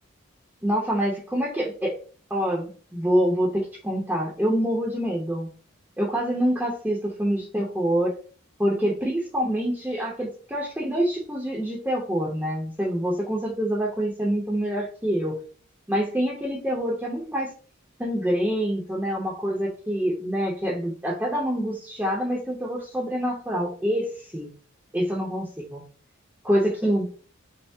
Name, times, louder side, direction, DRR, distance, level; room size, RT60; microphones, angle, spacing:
voice 1, 0.6-1.9 2.3-5.5 6.0-8.1 8.6-15.4 15.9-17.5 18.0-24.5 24.9-25.8 26.4-27.0, equal, 10° right, -4 dB, 0.7 m, -26 dB
5.3 x 2.0 x 3.4 m, 0.41 s
head